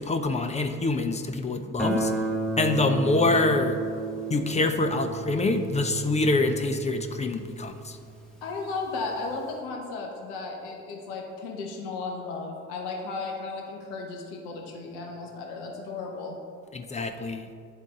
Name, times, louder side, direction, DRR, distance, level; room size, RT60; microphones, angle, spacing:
voice 1, 0.0-2.1 2.6-3.8 4.3-8.0 16.7-17.5, left 2 dB, 20° left, 7 dB, 0.4 m, -25 dB
Guitar, 1.8-8.5, right 3 dB, ahead, 1.1 m, -32 dB
voice 2, 8.4-16.4, left 3 dB, 70° left, 0 dB, 1.0 m, -35 dB
10.0 x 3.7 x 3.6 m, 2.4 s
hypercardioid pair, 55°, 41 cm